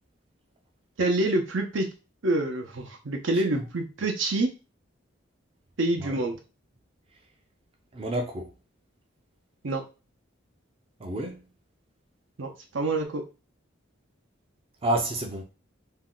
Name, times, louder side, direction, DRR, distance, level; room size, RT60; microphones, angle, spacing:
voice 1, 1.0-1.9 2.2-4.5 5.8-6.4 9.6-9.8 12.4-12.5 12.7-13.2, right 2 dB, 70° right, 0.7 m, -26 dB
voice 2, 7.9-8.5 11.0-11.4 14.8-15.4, right 1 dB, 30° right, 0.4 m, -29 dB
2.7 x 2.2 x 3.7 m
head